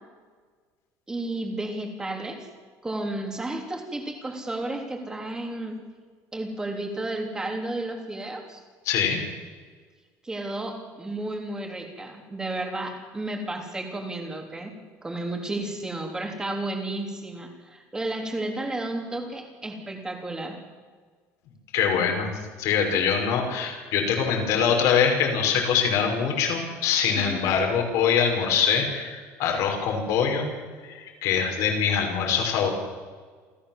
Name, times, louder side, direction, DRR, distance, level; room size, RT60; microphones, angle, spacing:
voice 1, 1.1-2.5 2.8-5.8 6.3-8.6 10.2-14.7 15.0-20.6 27.1-27.5, right 2 dB, 10° right, 3 dB, 3.4 m, -32 dB
voice 2, 8.9-9.2 21.7-22.3 22.6-30.5 30.8-32.7, left 7 dB, 65° left, 2 dB, 5.6 m, -23 dB
28.5 x 14.0 x 7.4 m, 1.5 s
cardioid pair, 155°, 6 cm